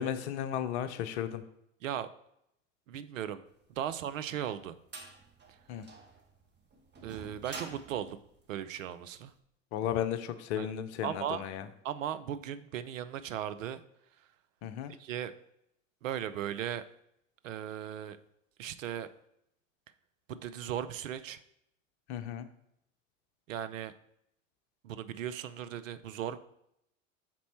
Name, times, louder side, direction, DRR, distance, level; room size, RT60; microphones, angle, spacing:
voice 1, 0.0-1.4 5.7-5.9 9.7-11.7 14.6-14.9 22.1-22.5, left 9 dB, 60° left, 10 dB, 0.7 m, -34 dB
voice 2, 2.9-3.4 3.8-4.8 7.0-8.2 8.5-9.3 10.6-10.7 11.0-11.4 11.8-13.8 15.0-15.3 16.0-16.8 17.4-18.2 18.6-19.1 20.3-21.4 23.5-23.9 24.8-26.4, right 10 dB, 75° right, 13 dB, 0.5 m, -37 dB
sound 1, 3.8-9.2, right 3 dB, 25° right, 1.3 m, -48 dB
6.0 x 4.1 x 4.3 m, 0.77 s
figure-of-eight pair, 75°, 39 cm